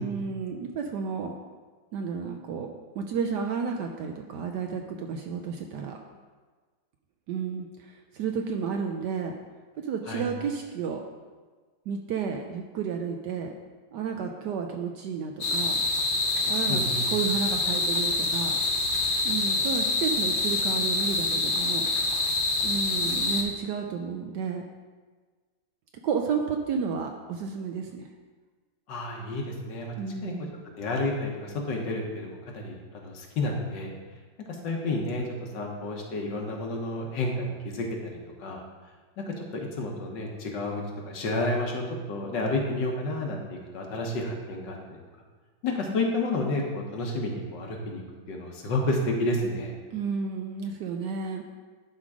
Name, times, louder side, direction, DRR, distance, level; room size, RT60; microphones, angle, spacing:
voice 1, 0.0-1.3 1.9-6.0 7.3-9.3 9.8-11.0 11.9-13.5 13.9-15.8 16.4-18.6 19.2-21.9 22.6-24.6 26.0-28.1 30.0-30.5 49.9-51.4, right 6 dB, 70° right, 3 dB, 1.0 m, -32 dB
sound 1, 15.4-23.4, left 3 dB, 50° left, 0.6 m, -26 dB
voice 2, 16.7-17.0 28.9-29.9 30.2-30.3 30.8-33.9 34.5-35.3 35.5-38.6 39.2-45.0 45.6-48.0 48.3-49.7, left 2 dB, 65° left, 0 dB, 1.7 m, -30 dB
11.0 x 3.8 x 4.8 m, 1.4 s
omnidirectional pair, 2.2 m